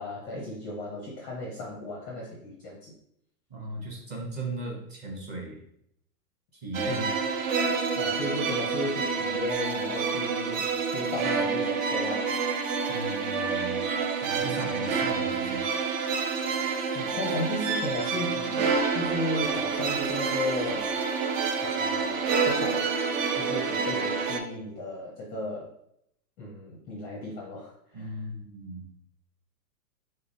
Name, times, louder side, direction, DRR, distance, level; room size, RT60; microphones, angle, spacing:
voice 1, 0.0-2.9 6.9-7.0 7.9-12.3 16.9-21.0 21.6-22.9 23.4-25.7 26.4-28.2, left 2 dB, 20° left, -3 dB, 0.5 m, -35 dB
voice 2, 3.5-5.6 6.6-7.1 12.9-13.9 14.2-15.7 27.9-28.9, right 2 dB, 20° right, -1 dB, 0.8 m, -37 dB
sound 1, 6.7-24.4, right 5 dB, 50° right, 0.7 m, -28 dB
3.8 x 3.8 x 2.6 m, 0.74 s
hypercardioid pair, 135°, 50 cm